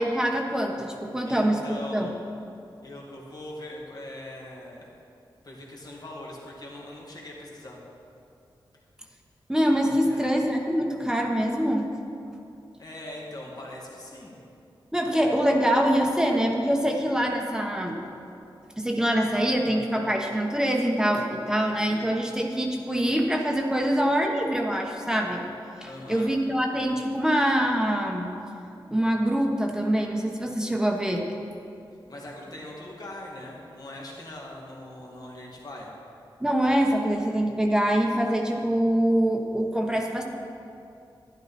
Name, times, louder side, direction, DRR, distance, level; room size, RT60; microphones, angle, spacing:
voice 1, 0.0-2.1 9.5-11.9 14.9-18.0 18.8-25.4 25.8-28.3 28.9-31.2 36.4-40.2, equal, 5° right, 1 dB, 1.2 m, -24 dB
voice 2, 1.3-2.1 2.8-4.9 5.4-7.8 10.0-10.2 12.8-14.4 25.8-26.3 32.1-35.9, left 1 dB, 50° left, -3 dB, 2.3 m, -41 dB
11.5 x 11.0 x 4.3 m, 2.7 s
wide cardioid pair, 75°, 9 cm